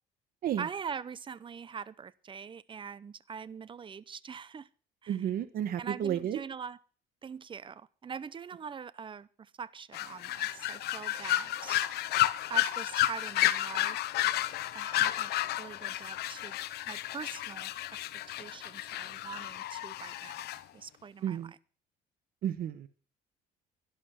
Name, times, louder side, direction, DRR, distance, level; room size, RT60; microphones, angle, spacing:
voice 1, 0.6-4.7 5.0-5.2 5.8-6.8 7.2-11.8 12.5-14.0 14.7-15.3 15.6-16.6 16.9-17.7 18.0-20.5 20.7-21.6, right 6 dB, 30° right, 19 dB, 0.7 m, -43 dB
voice 2, 5.1-6.4 21.2-21.5 22.4-22.9, right 10 dB, 60° right, 11 dB, 1.2 m, -32 dB
sound 1, 9.9-20.6, left 14 dB, 75° left, 0.8 m, -32 dB
11.5 x 11.5 x 5.8 m, 0.40 s
cardioid pair, 110°, 17 cm